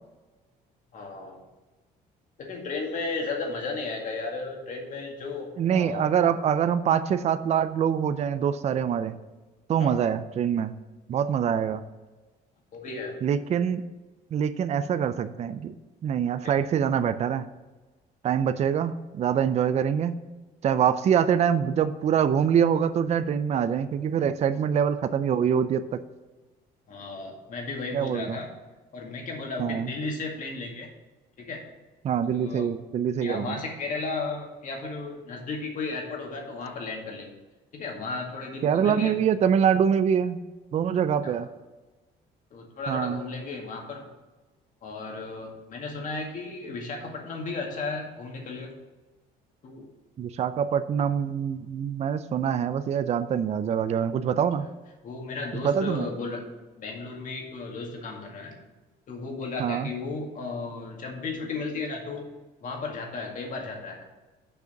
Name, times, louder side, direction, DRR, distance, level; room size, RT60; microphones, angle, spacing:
voice 1, 0.9-1.4 2.4-6.1 9.8-10.0 12.7-13.2 16.4-16.6 26.9-28.5 28.9-30.9 31.4-31.6 32.3-32.7 33.2-37.3 37.7-39.1 41.2-41.3 42.5-44.0 44.8-48.7 49.6-49.9 55.0-56.4 56.8-58.5 59.1-62.3 62.6-64.1, left 3 dB, 50° left, 1 dB, 2.1 m, -34 dB
voice 2, 5.6-9.1 9.7-10.7 11.1-11.8 13.2-13.8 14.3-15.7 16.0-17.5 18.2-20.2 20.6-26.0 27.9-28.4 29.6-29.9 32.0-33.6 38.6-40.4 40.7-41.5 42.9-43.2 50.2-54.7 55.5-56.1 59.6-59.9, right 8 dB, 40° right, 12 dB, 0.4 m, -25 dB
6.7 x 5.1 x 6.9 m, 1.2 s
cardioid pair, 110°, 17 cm